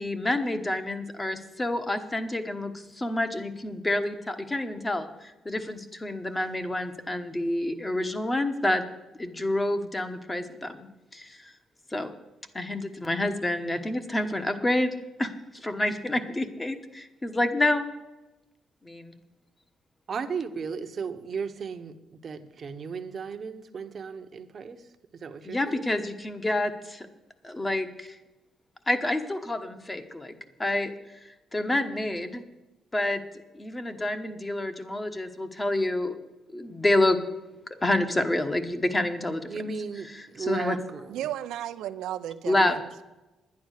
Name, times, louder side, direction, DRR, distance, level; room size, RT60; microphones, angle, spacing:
voice 1, 0.0-8.8 9.2-11.5 11.9-12.1 12.5-17.9 18.8-19.2 25.4-27.1 27.4-28.2 28.9-30.3 30.6-30.9 31.5-32.4 32.9-33.2 33.5-36.2 36.5-37.2 37.8-39.4 40.1-40.8 42.4-42.8, left 1 dB, 20° left, 1.2 m, -28 dB
voice 2, 20.1-24.8 25.1-25.9 39.5-41.2 42.5-42.8, right 5 dB, 50° right, 1.0 m, -35 dB
voice 3, 41.1-43.0, right 12 dB, 85° right, 0.6 m, -34 dB
10.5 x 9.6 x 6.5 m
cardioid pair, 90°, 0 cm